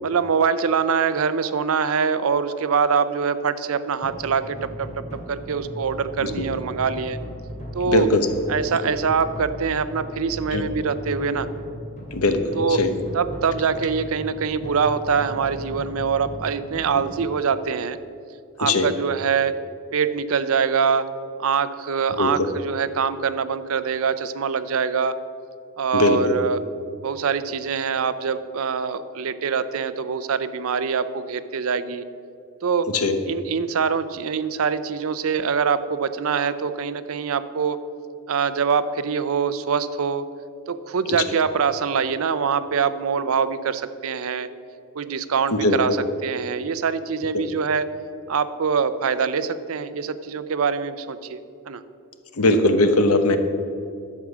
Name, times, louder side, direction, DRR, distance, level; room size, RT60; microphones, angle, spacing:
voice 1, 0.0-7.2 7.7-8.1 8.5-11.5 12.5-12.8 13.1-18.0 18.6-19.6 19.9-21.1 21.4-25.2 25.8-26.6 27.0-32.0 32.6-32.9 33.3-37.8 38.3-40.3 40.7-44.5 44.9-46.0 46.2-47.9 48.3-51.8, right 6 dB, 70° right, 13 dB, 0.5 m, -24 dB
sound 1, 4.0-16.8, equal, 30° left, 2.5 m, -37 dB
voice 2, 7.9-8.2 10.5-10.7 12.1-13.0 18.6-18.9 22.2-22.5 25.9-26.4 32.9-33.2 45.5-46.0 47.3-47.4 52.3-53.4, left 2 dB, 80° left, 8 dB, 1.0 m, -20 dB
11.0 x 7.3 x 6.1 m, 2.5 s
head